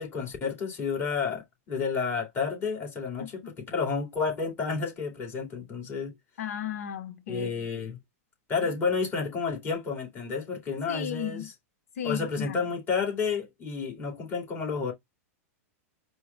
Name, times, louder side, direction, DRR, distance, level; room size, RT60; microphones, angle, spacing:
voice 1, 0.0-3.3 3.7-6.1 7.3-8.0 8.5-11.4 12.0-14.9, left 5 dB, 25° left, 2.3 m, -30 dB
voice 2, 3.2-3.5 6.4-7.7 8.6-8.7 10.9-11.5 11.9-12.6, left 9 dB, 75° left, 0.9 m, -35 dB
4.7 x 2.2 x 4.0 m
hypercardioid pair, 120°, 8 cm